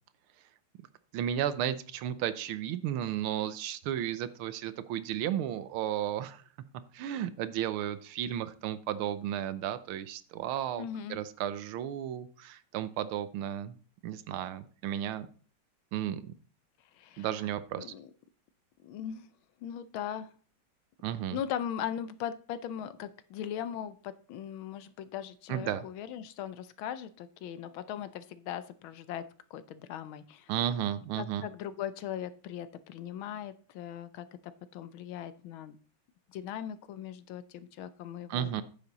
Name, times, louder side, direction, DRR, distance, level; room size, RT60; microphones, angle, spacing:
voice 1, 1.1-6.4 6.9-13.8 14.0-15.3 15.9-16.2 17.2-17.9 21.0-21.4 25.5-25.8 30.5-31.4 38.3-38.6, right 11 dB, 75° right, 14 dB, 1.5 m, -33 dB
voice 2, 10.8-11.2 16.9-17.3 17.8-18.1 18.8-19.3 19.6-20.3 21.3-29.2 29.5-30.5 31.1-35.8 36.3-38.5, left 9 dB, 75° left, 14 dB, 1.4 m, -39 dB
9.5 x 7.2 x 4.0 m, 0.41 s
omnidirectional pair, 2.4 m